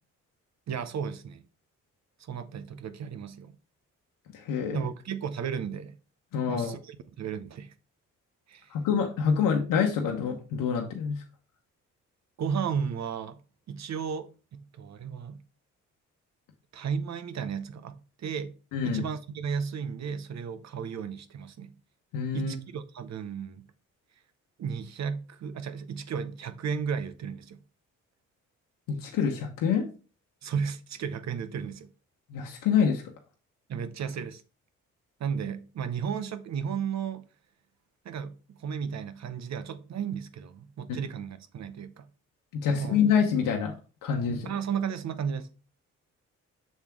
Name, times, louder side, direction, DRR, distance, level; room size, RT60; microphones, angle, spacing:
voice 1, 0.7-1.4 2.2-3.5 4.7-6.0 6.5-7.7 8.5-8.7 12.4-13.4 13.7-15.4 16.7-18.6 18.8-21.7 22.3-23.6 24.6-27.6 30.4-31.9 33.7-34.4 35.2-37.2 38.0-42.1 42.7-43.0 44.4-45.5, right 7 dB, 55° right, 0.8 m, -34 dB
voice 2, 4.3-4.8 6.3-6.7 8.7-11.2 18.7-19.0 22.1-22.6 28.9-29.8 32.3-33.0 40.9-41.0 42.6-43.7 44.0-44.5, left 7 dB, 85° left, 1.0 m, -26 dB
6.5 x 3.5 x 4.5 m
supercardioid pair, 60°, 32 cm